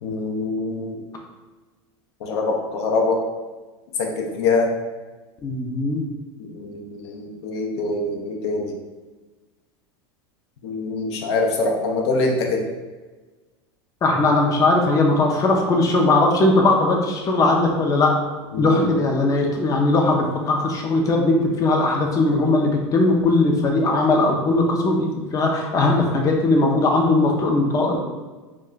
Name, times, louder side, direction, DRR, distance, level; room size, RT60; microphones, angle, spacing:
voice 1, 0.0-1.0 2.2-3.2 4.0-4.7 6.5-8.7 10.6-12.6 18.5-19.0, left 3 dB, 75° left, 1 dB, 0.6 m, -24 dB
voice 2, 5.4-6.0 14.0-18.2 18.6-28.0, left 2 dB, 25° left, 1 dB, 0.5 m, -19 dB
2.2 x 2.2 x 3.7 m, 1.3 s
hypercardioid pair, 110°, 14 cm